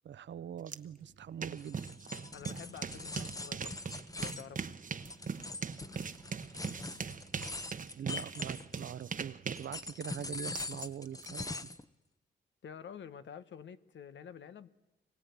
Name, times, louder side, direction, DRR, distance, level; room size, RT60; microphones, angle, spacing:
voice 1, 0.0-1.8 8.0-11.6, right 9 dB, 75° right, 17 dB, 0.8 m, -43 dB
sound 1, 0.7-0.8 1.1-11.3, right 6 dB, 45° right, 1.0 m, -41 dB
sound 2, 1.6-9.0 9.5-11.8, left 3 dB, 20° left, 0.9 m, -43 dB
voice 2, 2.3-3.8 4.2-4.7 12.6-14.7, left 8 dB, 75° left, 12 dB, 1.3 m, -48 dB
25.0 x 21.0 x 9.5 m, 1.0 s
cardioid pair, 105°, 19 cm